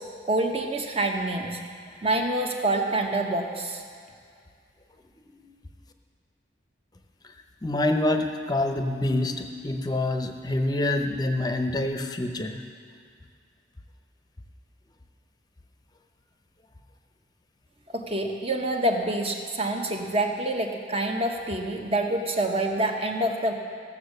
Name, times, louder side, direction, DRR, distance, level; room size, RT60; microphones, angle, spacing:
voice 1, 0.2-1.6 2.0-3.8 17.9-23.5, right 1 dB, 30° right, 2 dB, 1.0 m, -26 dB
voice 2, 7.6-12.6, left 1 dB, 20° left, 5 dB, 0.7 m, -26 dB
15.5 x 7.2 x 6.6 m, 2.2 s
head